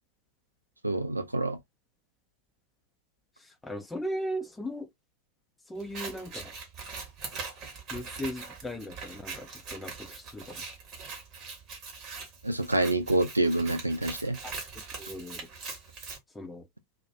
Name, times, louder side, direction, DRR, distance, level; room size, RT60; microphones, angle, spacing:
voice 1, 0.8-1.6 12.4-14.4, right 2 dB, 85° right, 0.3 m, -27 dB
voice 2, 3.4-4.9 5.7-6.5 7.9-10.6 14.4-14.5 15.0-15.5 16.3-16.7, equal, 10° left, 0.4 m, -37 dB
Scissors, 5.8-16.2, right 4 dB, 35° right, 0.9 m, -42 dB
2.3 x 2.1 x 2.6 m
figure-of-eight pair, 90°, 0 cm